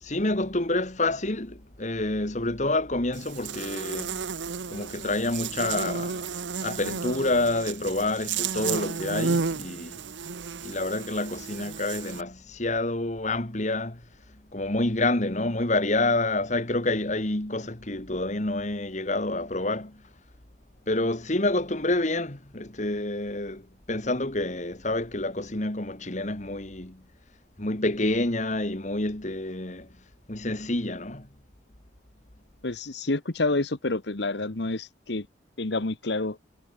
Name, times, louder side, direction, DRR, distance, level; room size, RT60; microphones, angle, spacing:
voice 1, 0.0-4.2 4.7-6.3 6.6-10.0 10.6-14.0 14.5-20.0 20.9-27.0 27.6-29.9 30.3-31.3, left 2 dB, 40° left, 2.2 m, -28 dB
Buzz, 3.1-12.2, right 5 dB, 80° right, 0.9 m, -33 dB
voice 2, 32.6-35.3 35.6-36.4, left 2 dB, 65° left, 1.3 m, -28 dB
head